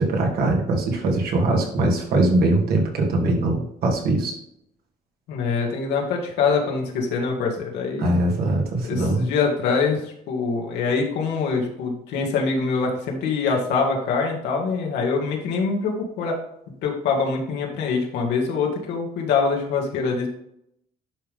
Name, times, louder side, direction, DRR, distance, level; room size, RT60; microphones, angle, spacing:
voice 1, 0.0-4.3 8.0-9.2, right 2 dB, 65° right, 0 dB, 2.4 m, -21 dB
voice 2, 5.3-8.2 8.8-16.4 16.8-20.3, left 5 dB, 85° left, 0 dB, 2.2 m, -24 dB
11.0 x 3.7 x 3.6 m, 0.76 s
cardioid pair, 110°, 17 cm